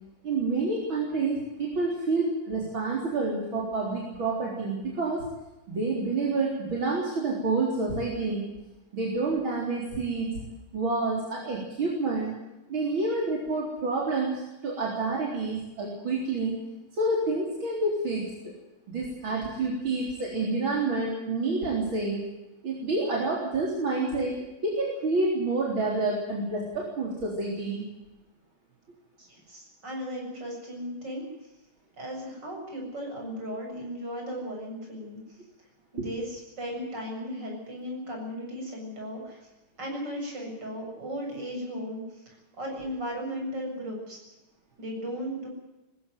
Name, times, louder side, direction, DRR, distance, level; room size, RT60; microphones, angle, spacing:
voice 1, 0.2-5.2 5.7-8.4 8.9-10.3 10.7-12.3 12.7-16.6 16.9-18.3 18.9-22.2 22.6-24.4 24.6-27.8 36.0-36.1, right 3 dB, 75° right, -2 dB, 4.7 m, -28 dB
voice 2, 29.2-31.2 32.0-35.2 35.9-39.4 39.8-44.2 44.8-45.5, equal, 60° right, 0 dB, 8.1 m, -36 dB
20.5 x 15.5 x 9.5 m, 0.99 s
omnidirectional pair, 2.2 m